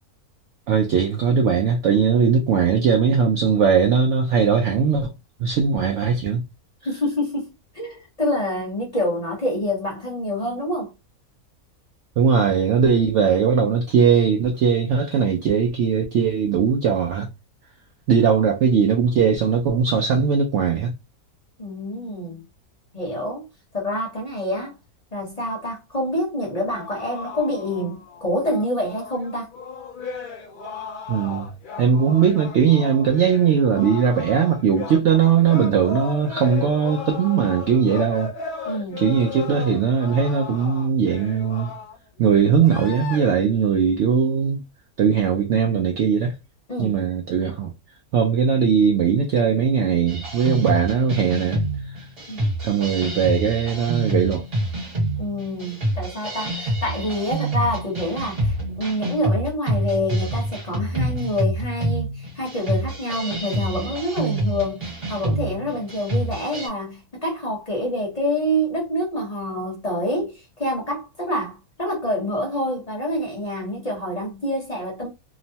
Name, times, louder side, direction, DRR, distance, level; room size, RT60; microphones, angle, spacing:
voice 1, 0.7-5.1 5.4-6.4 12.2-17.3 18.1-20.9 31.1-31.5 31.8-38.3 39.0-41.7 42.2-44.6 45.0-46.3 46.8-47.7 48.1-52.0 52.6-54.4, right 6 dB, 65° right, 0.7 m, -19 dB
voice 2, 6.8-10.9 21.6-22.4 22.9-23.5 23.7-24.8 25.1-29.5 38.6-39.0 46.7-47.0 52.3-52.4 55.2-75.1, left 1 dB, 35° left, 0.7 m, -27 dB
sound 1, 26.7-42.0 42.6-43.3, left 5 dB, 85° left, 0.4 m, -36 dB
sound 2, 50.1-66.7, right 1 dB, 40° right, 1.4 m, -27 dB
3.0 x 2.0 x 2.7 m
omnidirectional pair, 1.6 m